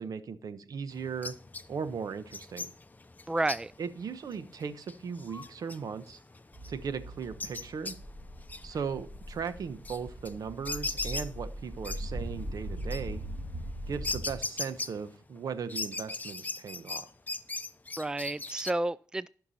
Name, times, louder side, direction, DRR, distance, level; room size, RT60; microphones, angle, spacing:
voice 1, 0.0-1.3 1.7-2.7 3.8-6.2 6.7-7.9 8.6-13.2 13.9-17.1, right 6 dB, 70° right, 1.1 m, -37 dB
peach faced lovebird, 0.9-15.4 15.7-18.7, left 3 dB, 25° left, 0.8 m, -40 dB
voice 2, 3.3-3.7 18.0-19.3, right 2 dB, 10° right, 0.4 m, -31 dB
sound 1, 6.5-14.4, equal, 30° right, 2.6 m, -40 dB
14.5 x 6.0 x 4.2 m
cardioid pair, 55°, 6 cm